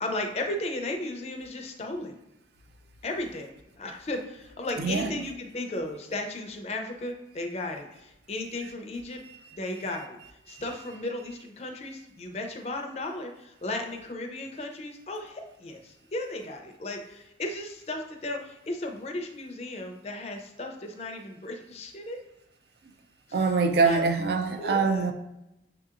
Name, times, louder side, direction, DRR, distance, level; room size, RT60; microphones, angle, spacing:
voice 1, 0.0-2.2 3.0-9.2 9.5-10.2 10.5-22.2 23.3-23.5 23.8-24.1 24.6-25.1, left 2 dB, 35° left, 0.4 m, -35 dB
voice 2, 4.8-5.3 10.5-10.6 23.3-25.1, right 4 dB, 65° right, 0.4 m, -24 dB
6.5 x 2.8 x 2.4 m
head